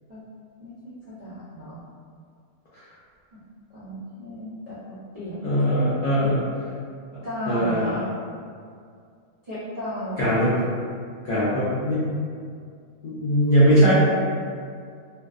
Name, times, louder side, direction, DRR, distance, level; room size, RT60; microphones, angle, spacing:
voice 1, 0.6-1.8 3.3-3.4 3.7-5.8 6.2-6.4 7.2-8.1 9.4-10.3, equal, 80° right, -12 dB, 0.3 m, -34 dB
voice 2, 5.4-6.4 7.5-8.0 10.2-10.5 11.2-12.1 13.0-13.9, equal, 75° left, -10 dB, 0.4 m, -20 dB
2.6 x 2.0 x 2.3 m, 2.2 s
omnidirectional pair, 1.5 m